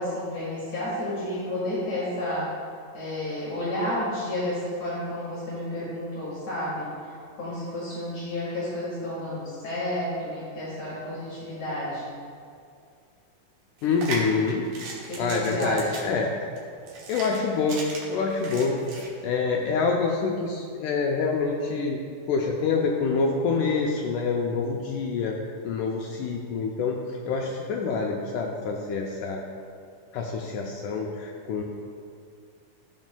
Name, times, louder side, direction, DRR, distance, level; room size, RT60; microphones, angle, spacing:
voice 1, 0.0-2.5 2.9-12.1 15.1-16.1, left 1 dB, 55° left, -9 dB, 2.9 m, -31 dB
voice 2, 13.8-14.7 15.2-16.3 17.1-17.8 18.1-18.8 19.2-22.0 22.3-25.4 25.6-29.4 30.1-31.6, left 4 dB, 80° left, 0 dB, 1.9 m, -26 dB
sound 1, 13.8-19.1, right 3 dB, 85° right, 3.1 m, -37 dB
15.0 x 6.3 x 2.2 m, 2.3 s
omnidirectional pair, 4.0 m